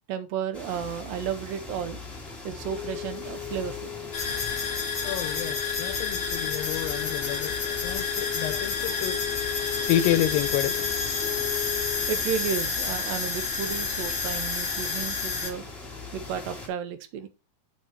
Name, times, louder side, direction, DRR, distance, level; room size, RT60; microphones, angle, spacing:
voice 1, 0.1-2.0 2.4-4.0 12.1-15.6 16.1-17.3, right 8 dB, 80° right, 2.6 m, -33 dB
sound 1, 0.5-16.7, left 3 dB, ahead, 1.7 m, -40 dB
Wind instrument woodwind instrument, 2.5-12.3, left 14 dB, 60° left, 1.8 m, -37 dB
sound 2, 4.1-15.5, left 5 dB, 25° left, 1.8 m, -30 dB
voice 2, 5.0-9.2 9.9-10.7, left 12 dB, 85° left, 2.3 m, -29 dB
6.6 x 6.2 x 4.4 m
omnidirectional pair, 4.0 m